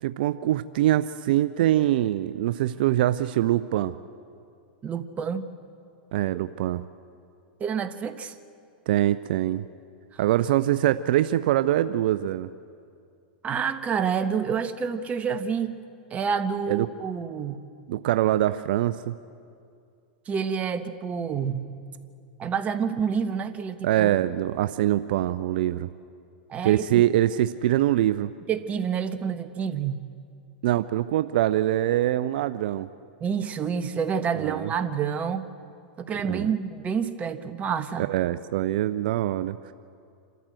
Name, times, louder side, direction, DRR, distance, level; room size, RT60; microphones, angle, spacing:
voice 1, 0.0-3.9 6.1-6.8 8.9-9.7 10.2-12.5 16.7-16.9 17.9-19.2 23.8-25.9 26.6-28.3 30.6-32.9 34.4-34.7 36.3-36.5 38.1-39.7, right 13 dB, 65° right, 12 dB, 0.5 m, -24 dB
voice 2, 4.8-5.4 7.6-8.3 13.4-15.8 16.1-17.6 20.3-21.6 22.4-24.1 26.5-27.0 28.5-30.0 33.2-35.5 36.0-38.1, right 7 dB, 25° right, 9 dB, 1.2 m, -28 dB
27.0 x 13.5 x 7.7 m, 2.4 s
hypercardioid pair, 110°, 5 cm